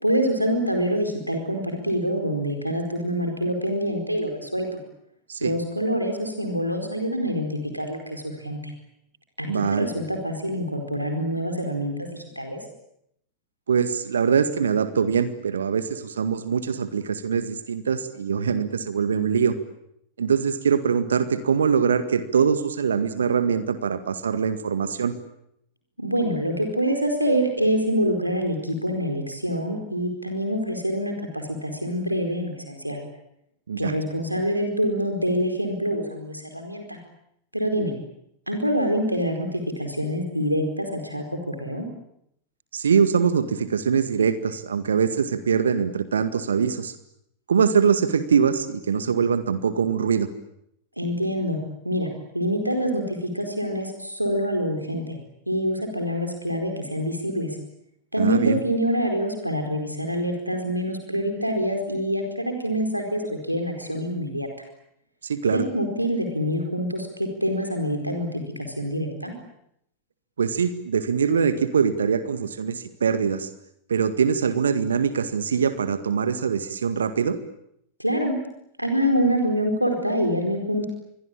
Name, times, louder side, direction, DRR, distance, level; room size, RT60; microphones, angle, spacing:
voice 1, 0.0-4.8 5.4-7.5 7.7-8.7 9.4-12.6 26.0-33.0 33.8-37.0 37.5-37.9 38.5-41.9 51.0-51.6 51.8-52.1 52.3-55.2 55.5-57.6 58.1-64.5 65.4-69.3 78.0-78.3 78.8-80.9, equal, 90° right, 4 dB, 4.6 m, -26 dB
voice 2, 9.5-9.9 13.7-19.5 20.2-25.2 33.7-33.9 42.7-46.9 47.5-50.3 58.2-58.6 65.2-65.6 70.4-73.5 73.9-77.4, right 6 dB, 70° right, 12 dB, 1.9 m, -23 dB
27.5 x 23.0 x 8.8 m, 0.76 s
figure-of-eight pair, 90°, 0 cm